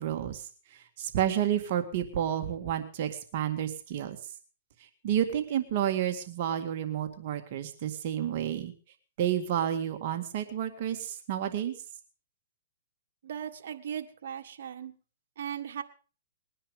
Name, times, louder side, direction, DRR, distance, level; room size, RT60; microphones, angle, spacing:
voice 1, 0.0-4.2 5.0-8.7 9.2-11.7, right 10 dB, 50° right, 6 dB, 2.0 m, -30 dB
voice 2, 13.2-14.9 15.4-15.8, right 9 dB, 65° right, 6 dB, 1.8 m, -37 dB
21.0 x 10.0 x 5.1 m, 0.38 s
hypercardioid pair, 145°, 0 cm